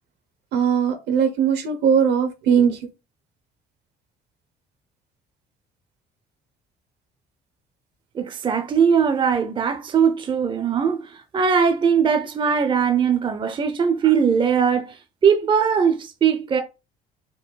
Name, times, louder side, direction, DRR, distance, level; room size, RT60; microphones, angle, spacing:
voice 1, 0.5-2.8, right 7 dB, 75° right, 1.2 m, -19 dB
voice 2, 8.1-15.0 15.2-16.6, right 7 dB, 30° right, 0.6 m, -20 dB
4.5 x 2.6 x 4.0 m
cardioid pair, 110°, 17 cm